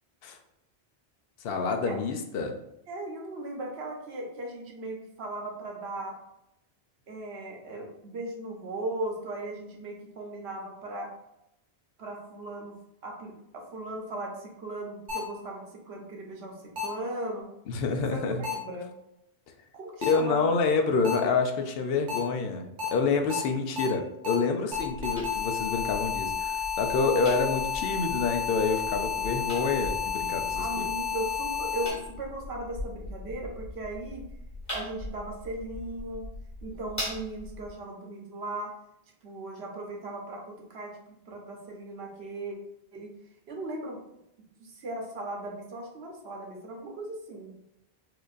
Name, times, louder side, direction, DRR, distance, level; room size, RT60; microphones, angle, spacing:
voice 1, 1.4-2.5 17.7-18.4 20.1-30.9, left 4 dB, 70° left, 5 dB, 0.8 m, -27 dB
voice 2, 2.9-6.1 7.1-11.1 12.0-12.8 13.0-13.3 13.7-17.5 18.1-18.9 19.7-20.5 30.6-34.2 34.7-36.3 36.6-38.7 39.2-42.6 42.9-43.1 43.5-44.0 44.6-47.5, right 2 dB, 80° right, 0 dB, 1.1 m, -37 dB
sound 1, 15.1-15.2 16.8-16.9 18.4-18.5 20.0-20.1 21.0-21.1 22.1-22.2 22.8-22.9 23.3-23.4 23.8-23.9 24.2-24.3 24.7-31.9, left 7 dB, 50° right, 1.0 m, -31 dB
sound 2, 24.7-37.7, left 1 dB, 15° left, 1.5 m, -41 dB
4.6 x 2.5 x 2.4 m, 0.85 s
omnidirectional pair, 1.0 m